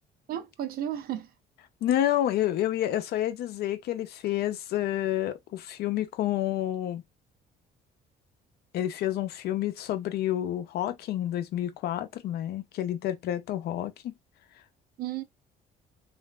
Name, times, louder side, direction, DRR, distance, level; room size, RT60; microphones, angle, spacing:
voice 1, 0.3-1.3 15.0-15.2, right 11 dB, 60° right, 0.6 m, -33 dB
voice 2, 1.8-7.0 8.7-14.1, left 12 dB, 70° left, 0.6 m, -29 dB
3.2 x 2.5 x 2.4 m
cardioid pair, 110°, 17 cm